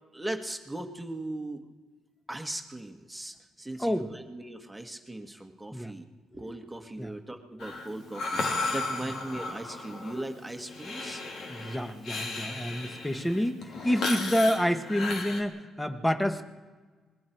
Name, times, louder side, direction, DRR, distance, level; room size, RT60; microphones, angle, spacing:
voice 1, 0.1-1.7 2.3-6.1 6.3-11.2, right 1 dB, 10° right, 4 dB, 1.8 m, -38 dB
voice 2, 3.8-4.1 5.7-5.9 7.0-7.1 11.5-16.5, equal, 5° left, 7 dB, 1.6 m, -28 dB
Breathing, 7.6-15.4, left 3 dB, 65° left, 3.1 m, -35 dB
27.0 x 21.0 x 4.7 m, 1.4 s
cardioid pair, 90°, 0 cm